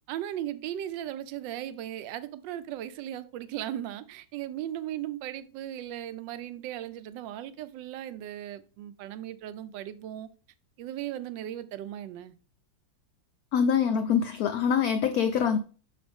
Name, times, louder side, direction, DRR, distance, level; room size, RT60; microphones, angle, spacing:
voice 1, 0.1-10.3 10.8-12.3, right 12 dB, 75° right, 1.2 m, -37 dB
voice 2, 13.5-15.6, left 7 dB, 85° left, 0.8 m, -24 dB
6.6 x 5.2 x 3.5 m
omnidirectional pair, 2.1 m